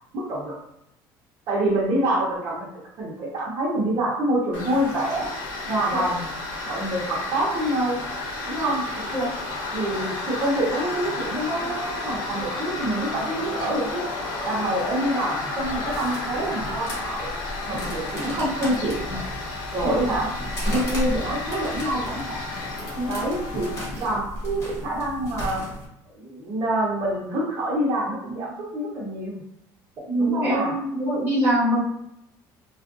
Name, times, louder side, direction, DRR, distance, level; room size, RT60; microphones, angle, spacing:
voice 1, 0.1-0.6 1.5-2.7 3.0-5.3 5.7-6.3 6.6-8.0 8.5-8.8 9.7-14.0 14.4-17.3 17.7-19.2 19.7-20.3 20.6-22.6 23.1-25.7 26.1-29.4 30.2-30.7, right 1 dB, 45° right, -8 dB, 0.8 m, -26 dB
Tools, 4.5-23.8, left 3 dB, 75° left, 0.9 m, -32 dB
sound 1, 15.6-25.9, equal, 30° left, 1.0 m, -34 dB
voice 2, 30.1-31.8, right 1 dB, 25° right, -7 dB, 1.2 m, -23 dB
3.4 x 2.4 x 2.5 m, 0.79 s
cardioid pair, 170°, 9 cm